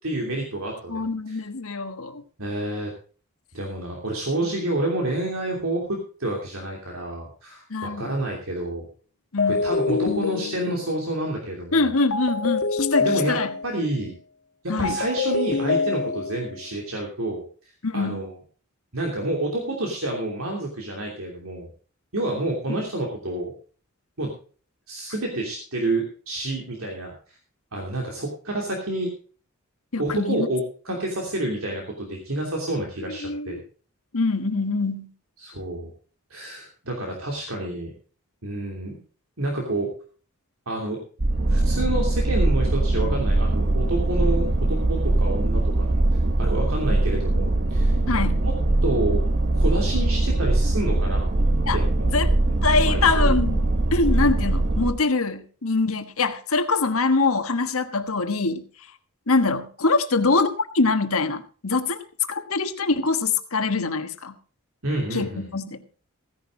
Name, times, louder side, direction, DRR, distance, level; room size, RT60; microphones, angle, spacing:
voice 1, 0.0-1.4 2.4-2.9 3.5-8.8 9.5-11.9 13.0-13.4 13.6-14.1 14.8-17.4 17.9-18.3 18.9-21.7 22.1-23.5 24.2-24.3 24.9-27.4 27.7-29.1 30.0-33.6 35.4-35.9 36.3-37.9 38.4-39.0 39.4-39.9 40.7-41.0 41.5-46.0 46.4-48.0 48.4-48.5 48.8-49.2 49.5-51.3 51.7-52.1 52.8-53.3 64.8-65.5, right 1 dB, 70° right, 0 dB, 3.0 m, -29 dB
voice 2, 0.9-2.2 4.4-4.5 7.7-8.1 9.3-9.6 11.7-13.5 14.7-15.0 17.8-18.2 29.9-30.5 30.9-31.0 33.1-33.6 34.1-35.1 48.1-48.4 51.7-51.8 52.1-52.3 52.6-53.6 53.9-58.6 59.3-62.0 62.3-64.4 65.1-65.8, left 3 dB, 75° left, 8 dB, 1.4 m, -24 dB
sound 1, 9.4-11.1 12.1-13.8 14.8-16.5, left 4 dB, 55° left, 1.5 m, -26 dB
sound 2, 41.2-54.9, right 2 dB, 45° right, 1.0 m, -21 dB
16.0 x 10.5 x 3.9 m, 0.40 s
head